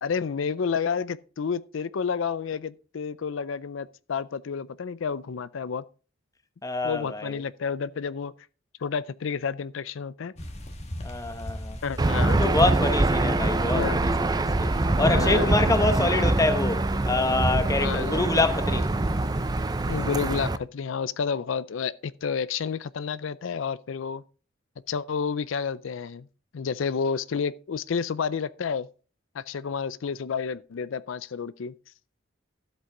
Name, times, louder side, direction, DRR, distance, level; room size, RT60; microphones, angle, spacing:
voice 1, 0.0-5.8 6.8-8.3 8.8-10.3 11.8-12.4 13.7-14.0 15.0-15.6 17.8-18.2 19.9-24.2 24.9-26.3 26.5-28.9 29.3-31.7, left 6 dB, 70° left, 0.4 m, -30 dB
voice 2, 6.6-7.4 11.0-11.8 12.3-14.7 15.0-18.9, left 2 dB, 15° left, 0.9 m, -26 dB
sound 1, 10.4-20.1, equal, 35° left, 1.9 m, -39 dB
Aircraft / Engine, 12.0-20.6, right 2 dB, 20° right, 0.5 m, -24 dB
13.0 x 8.0 x 3.8 m
head